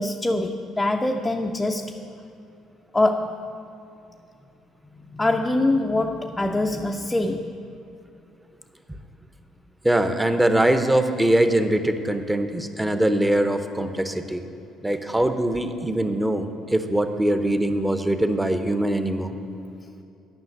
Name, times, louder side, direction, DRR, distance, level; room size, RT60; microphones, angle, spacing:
voice 1, 0.0-2.0 2.9-3.5 5.1-7.6, left 2 dB, 15° left, 2 dB, 0.5 m, -24 dB
voice 2, 9.8-14.5 14.8-19.3, right 1 dB, 10° right, 8 dB, 0.8 m, -22 dB
9.6 x 5.7 x 8.0 m, 2.7 s
hypercardioid pair, 60°, 0 cm